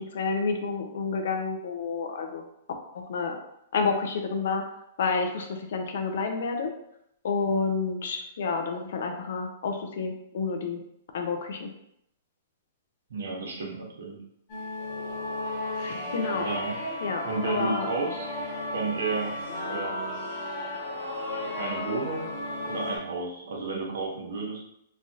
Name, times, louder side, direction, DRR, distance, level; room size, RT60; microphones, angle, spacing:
voice 1, 0.0-2.4 2.9-3.4 3.7-4.6 5.0-6.7 7.2-10.8 11.1-11.7 15.8-16.6 17.0-17.9, left 4 dB, 70° left, 5 dB, 0.5 m, -29 dB
voice 2, 13.1-14.2 16.3-16.8 17.2-18.3 18.7-19.4 19.6-20.2 21.3-22.3 22.6-24.6, right 3 dB, 80° right, -2 dB, 1.0 m, -32 dB
sound 1, 14.5-23.0, left 1 dB, 45° left, 1.2 m, -34 dB
3.1 x 2.3 x 2.7 m, 0.77 s
hypercardioid pair, 135°, 0 cm